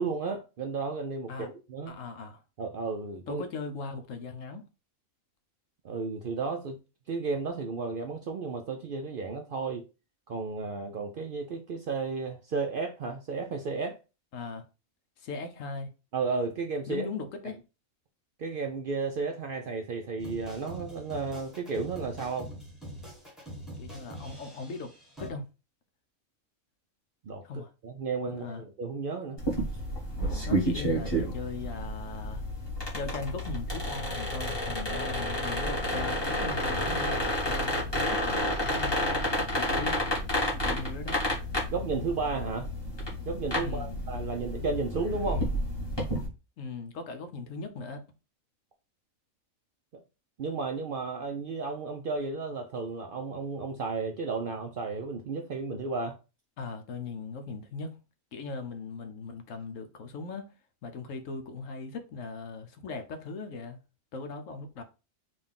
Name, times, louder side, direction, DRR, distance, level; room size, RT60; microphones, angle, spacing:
voice 1, 0.0-1.9 2.6-3.4 5.8-6.8 7.1-9.9 10.3-14.0 16.1-17.1 18.4-22.5 27.2-29.4 40.7-40.8 41.7-42.7 43.3-45.5 50.4-56.2, right 4 dB, 70° right, 0.5 m, -33 dB
voice 2, 1.9-2.4 3.3-4.6 14.3-14.6 15.2-15.9 16.9-17.6 23.8-24.9 25.2-25.5 27.4-27.7 28.3-28.6 30.5-32.4 32.9-40.0 40.6-41.2 43.6-44.0 46.6-48.0 56.6-58.0 58.3-60.5 60.8-63.8 64.1-64.8, left 4 dB, 70° left, 1.1 m, -39 dB
sound 1, 20.2-25.3, equal, ahead, 1.4 m, -44 dB
sound 2, 29.4-46.3, equal, 20° left, 1.4 m, -30 dB
3.9 x 2.5 x 3.6 m
omnidirectional pair, 1.4 m